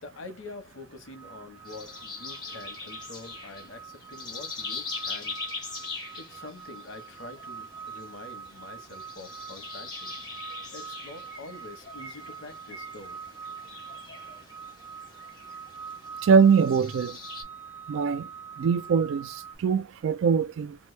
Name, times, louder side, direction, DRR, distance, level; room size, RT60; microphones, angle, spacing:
voice 1, 0.0-5.4 6.2-10.1 10.7-13.2, left 2 dB, 75° left, 0.9 m, -45 dB
sound 1, 1.1-19.6, right 6 dB, 10° right, 0.5 m, -44 dB
sound 2, 1.6-17.4, left 4 dB, 20° left, 1.1 m, -42 dB
voice 2, 16.2-17.2 17.9-18.3 18.6-20.8, right 6 dB, 70° right, 0.3 m, -22 dB
2.9 x 2.0 x 3.1 m
head